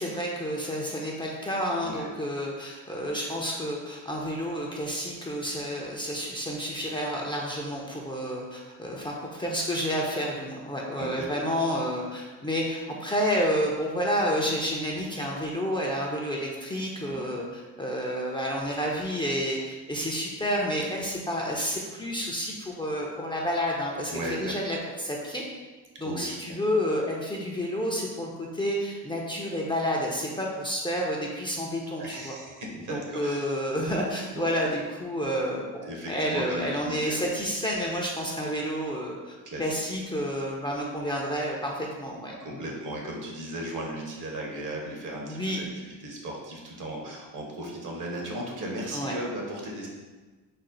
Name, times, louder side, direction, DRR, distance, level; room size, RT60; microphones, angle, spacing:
voice 1, 0.0-24.1 24.4-25.4 26.0-32.3 32.9-42.6 45.3-45.6 48.9-49.1, equal, 15° left, -3 dB, 0.5 m, -30 dB
voice 2, 10.9-11.6 17.1-17.3 24.1-24.6 26.0-26.6 32.0-33.5 34.3-34.5 35.8-37.2 39.5-39.8 42.4-49.9, right 1 dB, 55° right, -1 dB, 1.0 m, -36 dB
4.2 x 2.0 x 3.8 m, 1.3 s
supercardioid pair, 80°, 37 cm